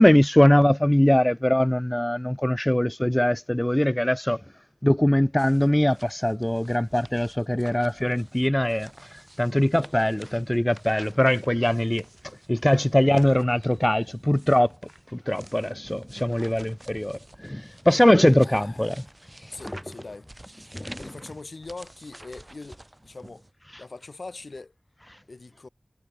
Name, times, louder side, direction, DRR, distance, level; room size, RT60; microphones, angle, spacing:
voice 1, 0.0-4.4 4.8-8.9 9.4-12.0 12.5-14.7 15.1-19.0 19.4-19.5 20.7-21.0, left 1 dB, 15° left, 0.5 m, -21 dB
sound 1, 5.4-23.5, right 1 dB, 25° right, 5.2 m, -49 dB
voice 2, 18.4-19.0 19.5-20.3 20.5-23.5 23.8-24.7 25.3-25.7, left 3 dB, 70° left, 2.5 m, -42 dB
wide cardioid pair, 55°, 0 cm